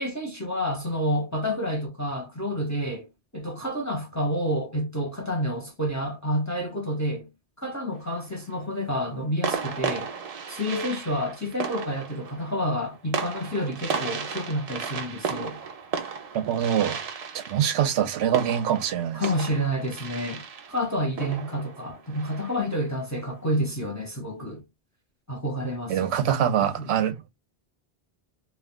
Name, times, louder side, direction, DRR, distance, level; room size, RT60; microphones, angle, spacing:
voice 1, 0.0-3.1 3.3-7.3 7.6-10.1 10.5-15.6 19.1-20.4 20.7-24.6 25.3-26.1 26.4-26.9, equal, 20° left, 0.6 m, -29 dB
sound 1, 7.9-8.5 9.4-22.8, right 5 dB, 50° right, 0.4 m, -34 dB
voice 2, 16.3-17.0 17.3-19.3 25.9-27.3, right 9 dB, 90° right, 0.9 m, -24 dB
2.3 x 2.3 x 3.6 m
omnidirectional pair, 1.1 m